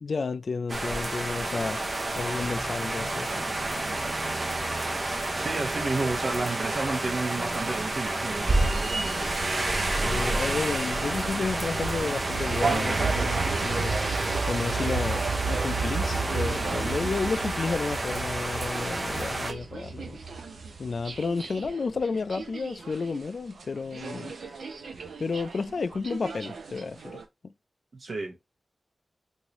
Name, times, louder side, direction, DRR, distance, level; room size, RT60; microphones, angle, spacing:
voice 1, 0.0-1.8 2.1-3.5 9.9-20.2 20.8-24.3 25.2-27.5, left 4 dB, 65° left, 0.3 m, -32 dB
sound 1, 0.7-19.5, right 2 dB, 40° right, 0.6 m, -30 dB
voice 2, 5.4-9.3 27.9-28.4, right 3 dB, 65° right, 0.9 m, -32 dB
sound 2, 8.5-23.3 23.6-23.7 23.9-27.2, right 4 dB, 85° right, 0.5 m, -34 dB
3.1 x 2.6 x 2.9 m
wide cardioid pair, 75°, 0 cm